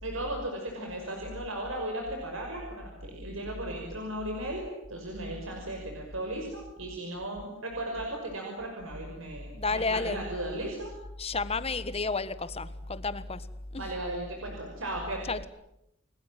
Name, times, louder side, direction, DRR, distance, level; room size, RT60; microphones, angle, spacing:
voice 1, 0.0-10.9 13.7-15.3, right 1 dB, 85° right, 2 dB, 5.8 m, -36 dB
voice 2, 9.6-10.2 11.2-13.5 13.7-13.9 15.3-15.4, left 3 dB, 30° left, 13 dB, 1.4 m, -31 dB
30.0 x 21.0 x 9.0 m, 0.83 s
head